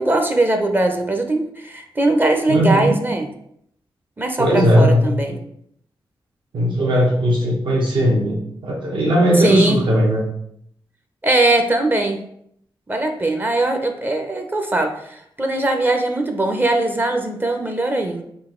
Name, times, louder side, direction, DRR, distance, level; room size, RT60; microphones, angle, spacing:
voice 1, 0.0-3.3 4.2-5.4 9.4-9.8 11.2-12.2 12.9-18.2, right 2 dB, 20° right, 4 dB, 0.6 m, -20 dB
voice 2, 2.5-3.0 4.4-5.3 6.5-10.2, equal, 70° right, -3 dB, 1.2 m, -18 dB
3.9 x 2.7 x 3.7 m, 0.70 s
cardioid pair, 85°, 9 cm